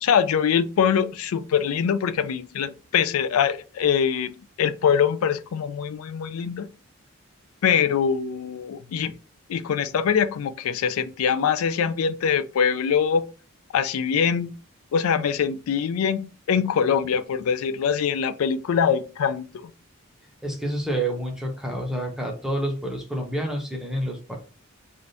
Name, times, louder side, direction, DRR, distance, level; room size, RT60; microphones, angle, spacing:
voice 1, 0.0-6.7 7.6-9.1 9.5-13.3 13.7-14.5 14.9-19.7, left 7 dB, 90° left, 0.3 m, -23 dB
voice 2, 20.4-24.4, right 1 dB, ahead, 0.5 m, -28 dB
3.3 x 2.5 x 2.6 m
head